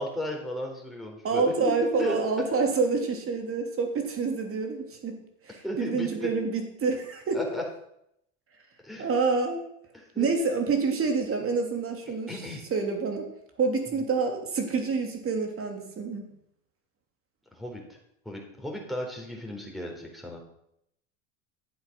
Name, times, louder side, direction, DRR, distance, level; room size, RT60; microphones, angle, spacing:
voice 1, 0.0-2.2 5.6-6.3 7.3-7.6 8.8-9.1 9.9-10.3 12.1-12.6 17.5-17.8 18.3-20.4, left 1 dB, ahead, -1 dB, 4.0 m, -35 dB
voice 2, 1.2-7.4 9.0-9.6 10.2-12.4 12.7-13.3 13.6-16.3, right 4 dB, 35° right, 4 dB, 3.1 m, -27 dB
12.0 x 7.9 x 6.1 m, 0.76 s
hypercardioid pair, 100°, 39 cm